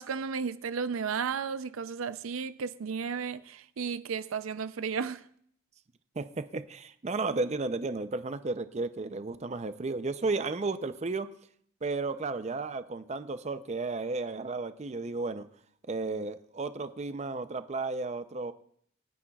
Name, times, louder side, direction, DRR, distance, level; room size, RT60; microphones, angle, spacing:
voice 1, 0.0-5.2, right 6 dB, 85° right, 0.5 m, -34 dB
voice 2, 6.2-11.3 11.8-15.5 15.9-18.5, right 3 dB, 35° right, 0.5 m, -33 dB
27.0 x 9.8 x 2.3 m
head